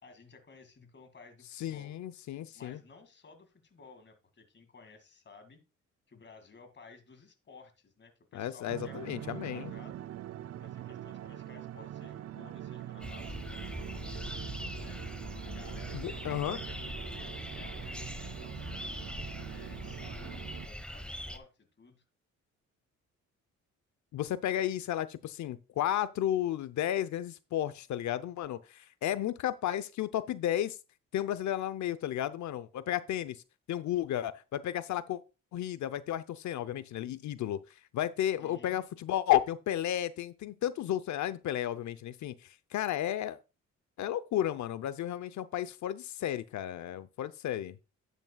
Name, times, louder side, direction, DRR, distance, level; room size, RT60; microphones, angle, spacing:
voice 1, 0.0-1.9 2.5-5.6 6.1-10.1 10.6-14.3 14.8-15.0 15.4-18.9 19.5-22.0 38.4-38.8, left 4 dB, 35° left, 2.2 m, -55 dB
voice 2, 1.6-2.8 8.3-9.7 15.9-16.6 24.1-30.8 31.1-33.4 33.7-35.2 35.5-37.6 37.9-43.4 44.0-47.8, left 12 dB, 70° left, 0.7 m, -33 dB
sound 1, 8.7-20.7, right 12 dB, 55° right, 0.5 m, -44 dB
sound 2, 13.0-21.4, equal, 5° left, 1.1 m, -41 dB
11.0 x 8.3 x 2.3 m
cardioid pair, 90°, 30 cm